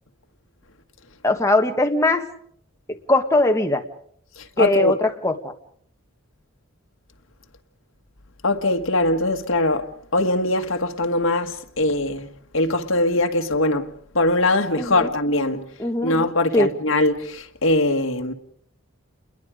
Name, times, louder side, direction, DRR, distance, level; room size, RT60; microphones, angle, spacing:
voice 1, 1.2-2.2 3.1-3.8 4.6-5.5 14.8-15.1 15.8-16.2 16.5-16.7, left 2 dB, 15° left, 1.6 m, -20 dB
voice 2, 4.4-4.9 8.4-12.3 12.5-15.6 16.0-18.3, left 2 dB, 65° left, 1.8 m, -22 dB
29.0 x 22.0 x 5.1 m
head